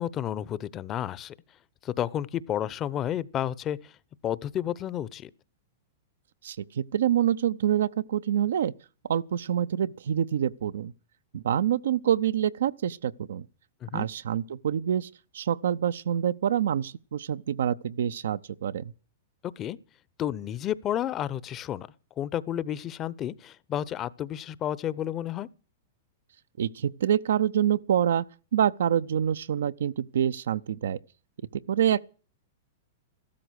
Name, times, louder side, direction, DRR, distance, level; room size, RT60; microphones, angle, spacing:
voice 1, 0.0-1.3 1.8-3.8 4.2-5.3 13.8-14.1 19.4-19.8 20.2-21.9 22.2-25.5, left 11 dB, 30° left, 0.9 m, -31 dB
voice 2, 6.4-8.7 9.1-10.9 11.3-13.5 13.9-15.1 15.3-18.9 26.6-28.2 28.5-31.0 31.7-32.0, right 9 dB, 70° right, 0.7 m, -26 dB
15.0 x 13.0 x 6.4 m
hypercardioid pair, 105°, 0 cm